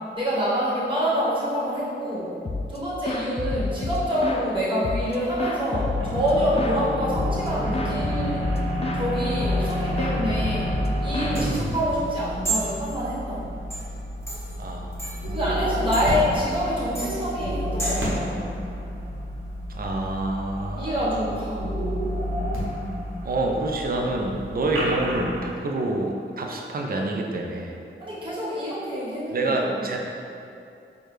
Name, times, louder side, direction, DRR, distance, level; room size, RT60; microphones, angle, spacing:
voice 1, 0.1-2.3 2.7-8.5 8.9-13.5 15.3-18.5 20.7-21.6 28.0-29.9, equal, 25° right, -9 dB, 1.5 m, -26 dB
sound 1, 2.5-2.8 3.1-4.5 4.8-6.8 7.2-7.5 7.7-9.1 9.4-9.7 10.0-12.1, left 3 dB, 30° left, 0.4 m, -29 dB
sound 2, 6.0-25.4, equal, 80° right, 0.9 m, -30 dB
sound 3, 11.0-18.2, right 2 dB, 10° left, 1.5 m, -35 dB
voice 2, 14.6-15.1 19.7-21.1 23.2-27.8 29.3-30.0, right 2 dB, 45° right, 1 dB, 0.5 m, -27 dB
4.5 x 2.3 x 3.2 m, 2.6 s
cardioid pair, 50°, 21 cm